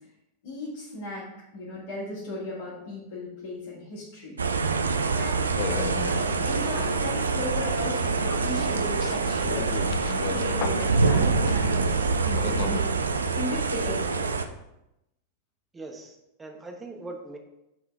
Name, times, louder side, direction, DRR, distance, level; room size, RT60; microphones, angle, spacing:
voice 1, 0.4-1.3 1.5-4.4 5.1-5.5 6.4-9.7 10.1-12.0 12.2-12.9 13.2-14.3, left 1 dB, 65° left, -11 dB, 2.6 m, -36 dB
sound 1, 4.4-14.4, right 4 dB, 75° right, 0.4 m, -25 dB
sound 2, 5.6-12.8, left 8 dB, 40° left, 0.5 m, -36 dB
voice 2, 15.7-17.4, right 2 dB, 15° right, 3 dB, 1.2 m, -41 dB
9.6 x 3.7 x 3.6 m, 0.87 s
figure-of-eight pair, 90°, 0 cm